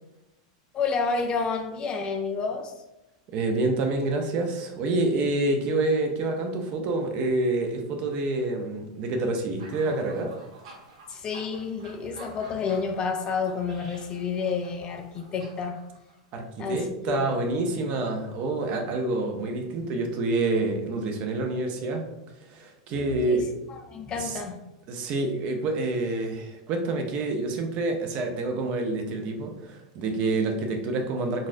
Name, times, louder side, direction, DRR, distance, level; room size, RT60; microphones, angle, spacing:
voice 1, 0.7-2.7 11.1-15.8 16.6-17.3 23.0-24.6, left 5 dB, 25° left, 5 dB, 0.3 m, -30 dB
voice 2, 3.3-10.3 16.3-22.0 22.5-23.5 24.2-24.4 24.9-31.5, right 2 dB, 40° right, 3 dB, 0.6 m, -27 dB
sound 1, 9.6-16.4, right 3 dB, 80° right, 1.2 m, -50 dB
4.0 x 2.4 x 2.6 m, 0.97 s
supercardioid pair, 140°, 3 cm